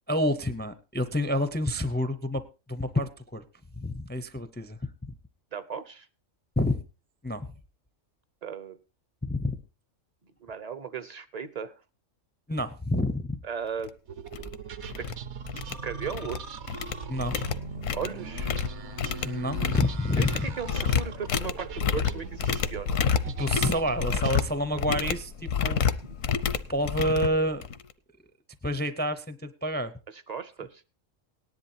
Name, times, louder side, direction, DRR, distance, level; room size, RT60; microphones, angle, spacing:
voice 1, 0.1-2.4 2.7-3.4 3.8-4.8 6.6-6.8 7.2-7.5 9.2-9.6 12.5-13.4 17.1-17.3 19.2-20.4 23.3-25.8 26.7-27.6 28.6-29.9, left 1 dB, 15° left, 12 dB, 0.4 m, -28 dB
voice 2, 5.5-6.1 8.4-8.8 10.4-11.8 13.4-14.0 14.4-14.5 15.0-15.1 15.8-16.4 17.9-18.5 20.2-23.0 30.1-30.8, right 6 dB, 45° right, 14 dB, 0.6 m, -36 dB
sound 1, 13.8-13.9 14.3-14.5 14.8-15.1 15.5-16.4 16.7-27.9, left 7 dB, 80° left, 1.1 m, -29 dB
sound 2, 14.1-24.4, right 5 dB, 65° right, 1.1 m, -40 dB
18.5 x 10.5 x 2.8 m, 0.30 s
omnidirectional pair, 1.3 m